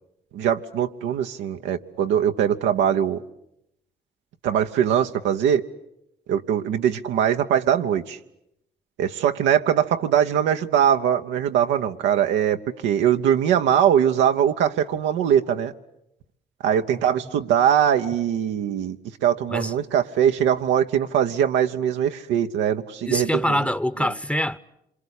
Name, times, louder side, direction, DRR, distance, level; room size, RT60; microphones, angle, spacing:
voice 1, 0.3-3.2 4.4-5.6 6.3-8.2 9.0-15.7 16.6-23.6 24.0-24.1, right 9 dB, 90° right, 0.9 m, -21 dB
voice 2, 23.0-24.6, left 1 dB, 5° left, 1.0 m, -24 dB
26.5 x 23.0 x 8.3 m
supercardioid pair, 50°, 19 cm